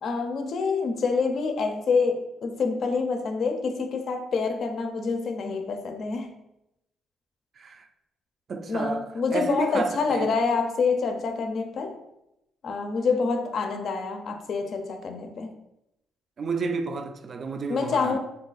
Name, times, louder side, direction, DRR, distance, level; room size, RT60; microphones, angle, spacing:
voice 1, 0.0-6.3 8.7-12.0 12.6-15.6 17.7-18.2, left 4 dB, 60° left, 0.4 m, -27 dB
voice 2, 7.6-7.9 8.5-10.3 16.4-18.2, right 4 dB, 50° right, 0.3 m, -31 dB
2.7 x 2.3 x 3.9 m
cardioid pair, 90°, 0 cm